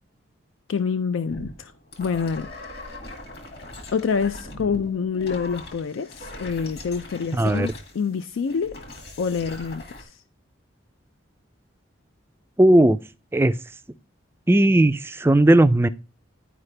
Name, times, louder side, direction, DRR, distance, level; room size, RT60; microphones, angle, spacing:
voice 1, 0.7-1.7 2.0-2.5 3.9-8.8 9.2-10.2, left 5 dB, 75° left, 0.4 m, -27 dB
sound 1, 1.3-10.0, left 1 dB, 55° left, 2.0 m, -40 dB
voice 2, 7.3-7.7 12.6-13.0 13.3-13.6 14.5-15.9, right 1 dB, 10° right, 0.3 m, -17 dB
11.0 x 4.9 x 3.2 m
head